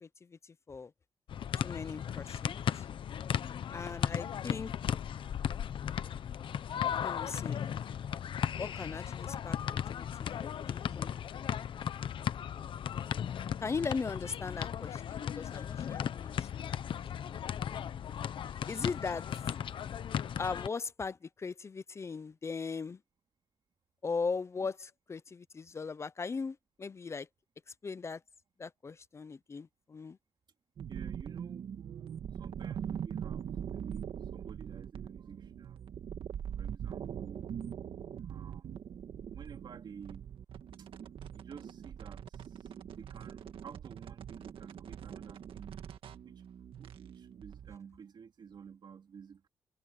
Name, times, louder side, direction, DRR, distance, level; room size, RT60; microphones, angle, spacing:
voice 1, 0.0-0.9 1.6-2.8 3.7-4.7 7.0-7.6 8.6-11.1 13.6-16.8 17.2-17.4 18.7-19.2 20.4-23.0 24.0-27.3 27.8-28.2 28.6-30.2, left 4 dB, 30° left, 0.6 m, -39 dB
sound 1, 1.3-20.7, left 9 dB, 60° left, 0.8 m, -36 dB
sound 2, 30.8-47.8, right 8 dB, 70° right, 1.8 m, -42 dB
voice 2, 30.9-31.7 32.3-35.9 36.6-37.5 38.2-38.7 39.3-40.3 40.8-45.9 46.2-46.4 46.8-49.5, right 7 dB, 55° right, 2.6 m, -52 dB
wide cardioid pair, 140°, 9 cm